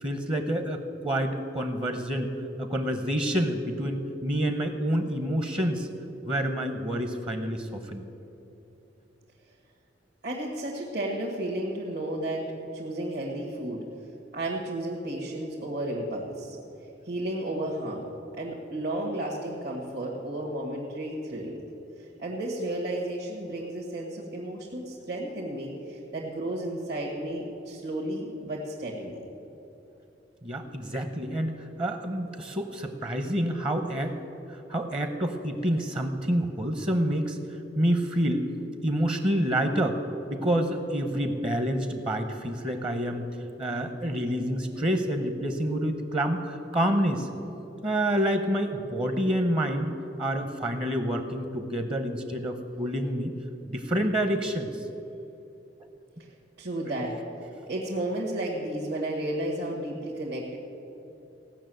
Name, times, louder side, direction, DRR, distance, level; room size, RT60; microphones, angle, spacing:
voice 1, 0.0-2.3 2.6-5.9 6.2-8.0 30.4-34.2 34.5-37.4 37.8-38.5 38.8-40.0 40.3-43.2 43.6-47.3 47.8-49.9 50.2-53.3 53.7-54.7, equal, 30° right, 7 dB, 0.8 m, -28 dB
voice 2, 10.2-13.8 14.3-16.6 17.1-18.1 18.4-21.6 22.0-29.3 56.6-57.2 57.7-60.6, right 1 dB, 65° right, -4 dB, 1.7 m, -33 dB
16.0 x 6.2 x 9.1 m, 3.0 s
head